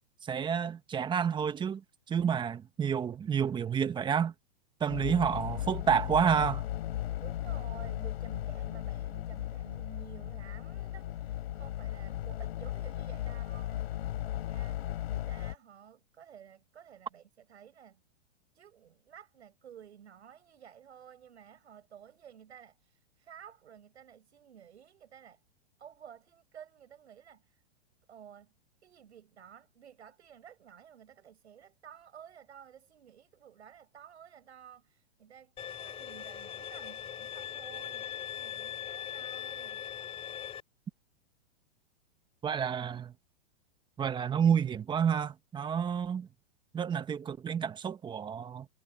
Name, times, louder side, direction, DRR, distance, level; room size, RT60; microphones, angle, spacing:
voice 1, 0.2-1.8 2.1-4.3 4.8-6.6 42.4-43.1 44.0-46.3 46.7-48.7, right 7 dB, 15° right, 1.3 m, -29 dB
sound 1, 4.9-15.5, left 12 dB, 65° left, 4.4 m, -36 dB
voice 2, 7.2-18.0 18.5-25.4 25.8-27.6 28.1-28.5 28.8-39.8, right 9 dB, 85° right, 7.6 m, -53 dB
Bowed string instrument, 35.6-40.6, left 10 dB, 15° left, 4.3 m, -40 dB
hypercardioid pair, 140°, 33 cm